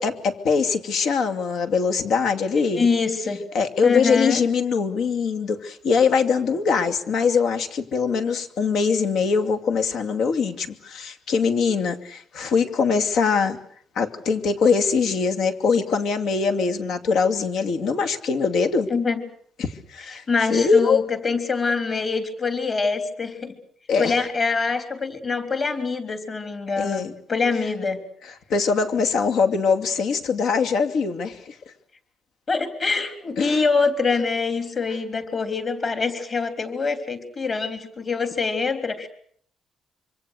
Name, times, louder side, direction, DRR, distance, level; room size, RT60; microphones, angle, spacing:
voice 1, 0.0-2.9 3.5-13.6 14.0-18.9 19.6-20.2 20.5-21.0 23.9-24.1 26.8-27.1 28.5-31.5 33.4-33.6, left 5 dB, 65° left, 6 dB, 2.5 m, -22 dB
voice 2, 2.5-3.4 3.8-4.4 18.9-19.2 20.3-23.5 24.0-28.0 32.5-39.1, left 4 dB, 30° left, 8 dB, 3.5 m, -24 dB
26.0 x 25.0 x 6.6 m, 0.63 s
cardioid pair, 170°, 0 cm